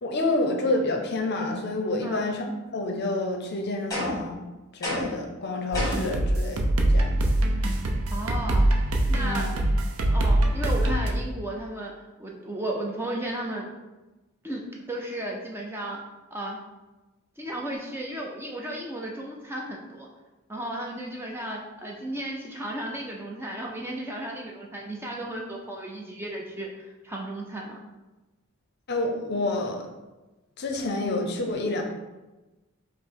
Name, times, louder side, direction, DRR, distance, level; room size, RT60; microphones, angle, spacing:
voice 1, 0.0-2.4 2.7-4.4 4.7-7.1 9.2-9.5 28.9-29.9 30.6-31.8, left 2 dB, 50° left, 3 dB, 0.6 m, -28 dB
sound 1, 3.9-4.3 4.8-5.3 5.7-6.2, left 1 dB, 15° left, 1.2 m, -30 dB
sound 2, 5.7-11.1, right 1 dB, 80° right, 0.5 m, -23 dB
voice 2, 8.1-8.7 9.1-9.5 10.1-11.9 12.2-13.7 14.4-16.0 16.3-16.6 17.4-20.1 20.5-27.8, right 1 dB, 10° right, -1 dB, 0.4 m, -34 dB
5.0 x 2.0 x 4.5 m, 1.1 s
head